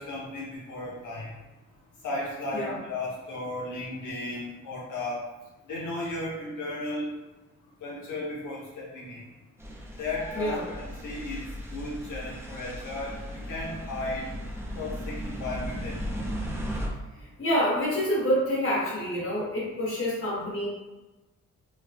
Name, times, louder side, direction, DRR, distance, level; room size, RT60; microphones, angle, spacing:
voice 1, 0.0-1.3 2.0-5.2 5.7-7.1 7.8-9.2 10.0-11.4 11.7-13.1 13.5-14.2 14.7-16.3, left 2 dB, 90° left, -5 dB, 0.7 m, -35 dB
sound 1, 9.6-16.9, equal, 10° right, 0.4 m, -36 dB
voice 2, 10.3-10.6 17.2-20.7, equal, 45° left, -7 dB, 1.5 m, -27 dB
3.2 x 2.1 x 3.3 m, 1.1 s
wide cardioid pair, 155°, 30 cm